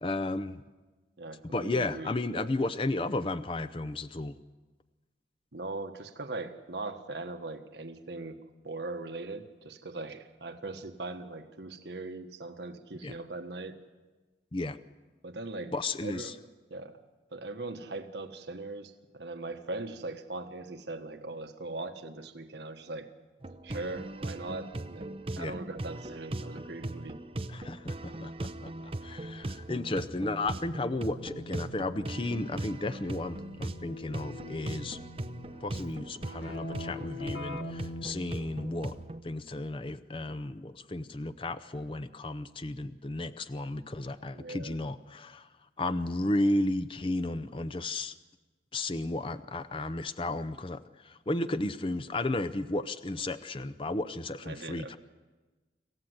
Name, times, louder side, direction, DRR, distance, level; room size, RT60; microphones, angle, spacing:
voice 1, 0.0-0.6 1.5-4.4 13.0-13.1 14.5-14.8 15.7-16.3 25.4-25.5 27.5-28.7 29.0-35.0 35.6-39.0 39.2-45.5 45.8-48.1 48.7-55.0, left 2 dB, 30° left, 10 dB, 0.6 m, -33 dB
voice 2, 1.2-2.5 5.5-13.8 15.2-15.7 16.0-16.3 16.7-17.0 17.3-23.1 23.6-27.2 44.3-44.8 54.4-55.0, right 2 dB, 70° right, 6 dB, 1.4 m, -40 dB
sound 1, 23.4-39.2, right 1 dB, 30° right, 0.8 m, -39 dB
Keyboard (musical), 30.9-39.3, left 3 dB, 90° left, 1.2 m, -45 dB
27.0 x 15.0 x 7.9 m, 1.3 s
head